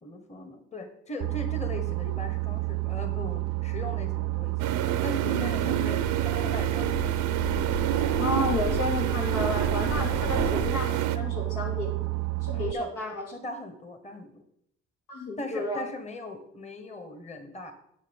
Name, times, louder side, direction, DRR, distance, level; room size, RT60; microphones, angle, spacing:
voice 1, 0.0-4.8 5.0-6.9 10.1-10.3 12.5-12.9 13.3-14.4 15.4-17.7, left 1 dB, 20° left, 7 dB, 1.3 m, -39 dB
Boat Water vehicle, 1.2-12.7, right 23 dB, 65° right, 0.4 m, -30 dB
sound 1, 4.6-11.2, right 10 dB, 90° right, 0.8 m, -29 dB
sound 2, 5.5-10.7, left 5 dB, 40° left, 3.2 m, -37 dB
voice 2, 8.1-11.9 12.4-13.3 15.1-15.8, left 2 dB, 85° left, 0 dB, 3.0 m, -32 dB
10.5 x 6.1 x 5.4 m, 0.74 s
cardioid pair, 90°, 30 cm